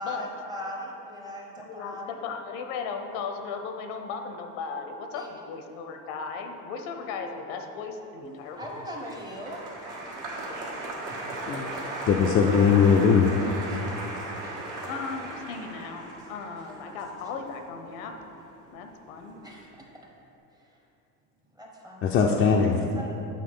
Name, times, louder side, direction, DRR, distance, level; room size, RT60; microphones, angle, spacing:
voice 1, 0.0-2.2 5.1-5.3 8.6-9.6 19.4-19.7 21.5-22.7 22.9-23.2, equal, 10° right, -2 dB, 0.8 m, -39 dB
voice 2, 1.6-8.7 14.9-18.1 18.7-19.4, left 5 dB, 90° left, 5 dB, 0.8 m, -36 dB
Applause, 8.5-18.9 19.1-19.7, right 2 dB, 65° right, 1.5 m, -37 dB
voice 3, 12.1-13.3 22.0-22.8, left 6 dB, 35° left, -1 dB, 0.4 m, -20 dB
7.6 x 3.6 x 5.4 m, 2.8 s
cardioid pair, 150°, 34 cm